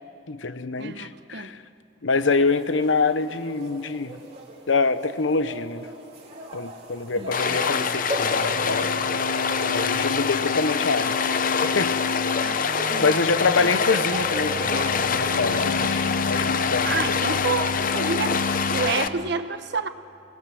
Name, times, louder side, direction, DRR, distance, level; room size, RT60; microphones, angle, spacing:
voice 1, 0.3-1.6 2.0-4.2 4.7-5.9 6.5-8.9 9.7-11.2 11.6-12.0 12.3-12.5 13.0-17.2, left 4 dB, 85° left, 12 dB, 0.9 m, -25 dB
voice 2, 0.8-1.5 7.1-7.6 12.4-12.6 12.9-13.2 13.6-13.8 16.8-18.4 18.7-19.9, right 4 dB, 60° right, 10 dB, 1.1 m, -29 dB
sound 1, 2.2-17.9, right 1 dB, 35° right, 3.0 m, -39 dB
Stream, 7.3-19.1, left 6 dB, 45° left, 0.7 m, -25 dB
sound 2, 7.8-18.9, left 4 dB, 65° left, 1.9 m, -31 dB
27.0 x 19.0 x 7.7 m, 2.5 s
head